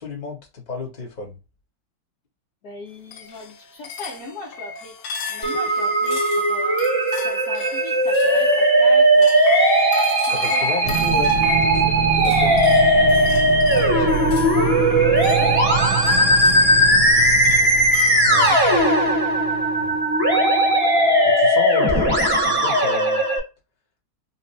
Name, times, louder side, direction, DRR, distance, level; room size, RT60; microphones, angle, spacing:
voice 1, 0.0-1.4 10.3-12.6 18.2-18.8 19.8-20.0 21.2-23.2, left 3 dB, 30° left, 1.0 m, -32 dB
voice 2, 2.6-5.0 5.3-6.2 6.5-6.8 7.2-9.4 10.3-11.0 12.4-12.6 13.7-14.9 15.4-16.2 18.5-18.6 18.9-19.2, left 2 dB, 60° left, 1.3 m, -38 dB
sound 1, 3.1-18.7, left 5 dB, 80° left, 1.3 m, -34 dB
Musical instrument, 5.4-23.4, right 1 dB, 15° right, 1.0 m, -18 dB
sound 2, 10.8-20.3, right 8 dB, 75° right, 1.2 m, -27 dB
4.2 x 2.2 x 2.6 m
omnidirectional pair, 2.1 m